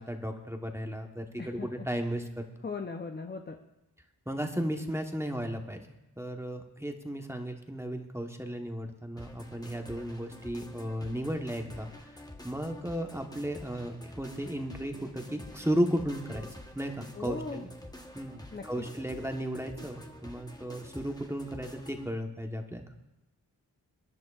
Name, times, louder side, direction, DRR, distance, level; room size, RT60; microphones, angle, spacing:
voice 1, 0.0-2.4 4.3-5.8 6.2-16.5 16.7-17.7 18.1-22.9, equal, 5° right, 4 dB, 1.1 m, -35 dB
voice 2, 2.6-3.6 17.2-17.7 18.5-18.8, left 4 dB, 25° left, 4 dB, 0.7 m, -38 dB
sound 1, 9.2-22.1, left 1 dB, 10° left, 1.1 m, -48 dB
23.5 x 10.5 x 2.5 m, 0.96 s
wide cardioid pair, 65°, 39 cm